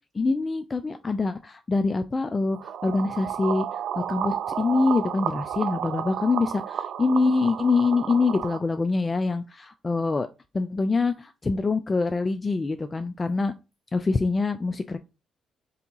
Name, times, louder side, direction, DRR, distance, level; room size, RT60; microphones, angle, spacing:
voice 1, 0.1-10.3 10.5-13.5 13.9-15.0, left 3 dB, 25° left, 8 dB, 0.3 m, -25 dB
sound 1, 2.5-8.6, right 9 dB, 75° right, 0.3 m, -32 dB
3.4 x 2.8 x 3.9 m, 0.28 s
cardioid pair, 90°, 0 cm